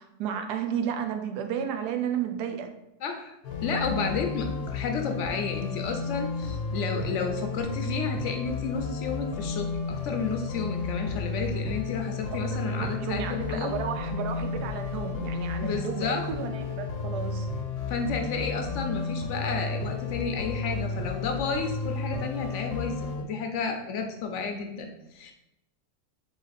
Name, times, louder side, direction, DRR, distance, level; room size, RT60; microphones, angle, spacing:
voice 1, 0.0-2.7 12.3-17.5, right 8 dB, 90° right, 6 dB, 1.2 m, -33 dB
voice 2, 3.0-3.4 3.6-9.7 10.0-13.7 15.6-16.2 17.9-25.3, left 4 dB, 65° left, 4 dB, 0.7 m, -31 dB
sound 1, 3.4-23.2, left 4 dB, 90° left, 1.3 m, -32 dB
3.9 x 3.2 x 4.0 m, 0.88 s
omnidirectional pair, 1.7 m